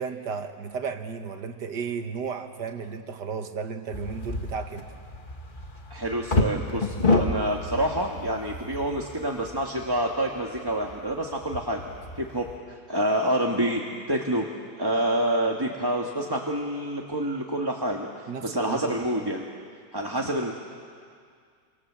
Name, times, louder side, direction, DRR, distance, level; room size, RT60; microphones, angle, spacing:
voice 1, 0.0-4.9 18.3-18.9 19.2-19.3, right 6 dB, 70° right, 6 dB, 2.1 m, -34 dB
sound 1, 3.9-12.6, left 2 dB, 30° left, 1.5 m, -30 dB
voice 2, 5.9-11.8 12.2-14.5 14.8-19.5 19.9-20.5, right 1 dB, 15° right, 0 dB, 1.4 m, -27 dB
28.5 x 25.5 x 7.5 m, 2.1 s
omnidirectional pair, 1.9 m